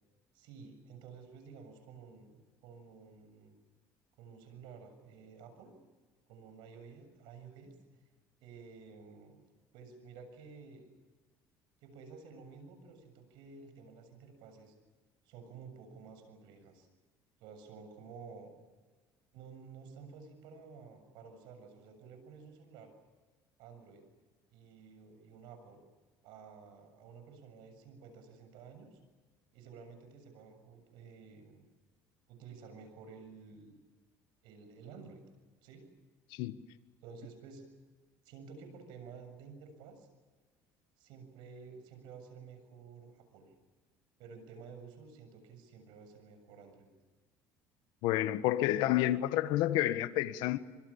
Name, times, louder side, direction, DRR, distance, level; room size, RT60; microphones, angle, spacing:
voice 1, 0.3-3.6 4.2-5.7 6.3-8.0 8.4-9.4 9.7-10.9 11.8-14.8 15.2-16.9 17.4-18.6 19.3-22.9 23.6-24.0 24.5-25.8 26.2-29.0 29.5-31.7 32.3-33.8 34.4-35.2 35.6-35.9 37.0-37.7 38.2-40.1 41.0-43.5 44.2-46.9, right 5 dB, 80° right, 7.2 m, -52 dB
voice 2, 48.0-50.6, left 14 dB, 80° left, 1.5 m, -29 dB
25.5 x 25.0 x 7.3 m
cardioid pair, 105°, 8 cm